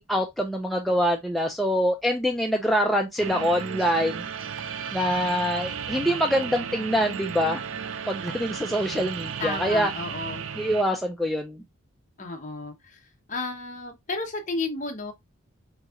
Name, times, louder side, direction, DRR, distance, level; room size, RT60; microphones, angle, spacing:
voice 1, 0.1-4.2 4.9-7.6 8.1-9.9 10.6-11.6, equal, ahead, 0.3 m, -25 dB
sound 1, 3.2-10.8, right 7 dB, 70° right, 0.4 m, -34 dB
voice 2, 9.4-10.4 12.2-15.1, left 3 dB, 35° left, 0.8 m, -33 dB
5.9 x 2.8 x 2.4 m
head